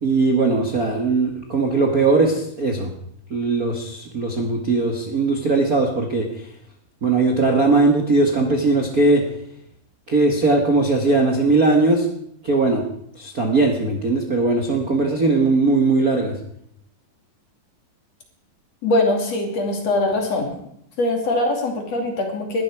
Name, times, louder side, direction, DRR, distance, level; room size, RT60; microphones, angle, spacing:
voice 1, 0.0-2.9 3.3-6.3 7.0-9.2 10.1-12.1 12.4-12.8 13.1-16.3, right 3 dB, 80° right, 1 dB, 0.8 m, -19 dB
voice 2, 18.8-20.5 21.0-22.6, left 2 dB, 45° left, 3 dB, 3.2 m, -22 dB
20.0 x 13.0 x 4.8 m, 0.71 s
omnidirectional pair, 4.7 m